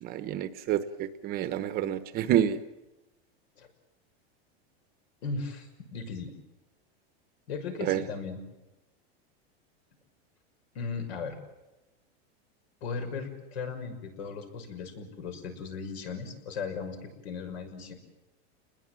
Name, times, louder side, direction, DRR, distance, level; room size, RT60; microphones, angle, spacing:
voice 1, 0.0-2.6 7.9-8.0, right 11 dB, 30° right, 12 dB, 1.0 m, -28 dB
voice 2, 5.2-6.3 7.5-8.4 10.7-11.4 12.8-17.9, left 5 dB, 80° left, 6 dB, 6.1 m, -37 dB
30.0 x 21.0 x 7.6 m, 1.0 s
supercardioid pair, 160°, 32 cm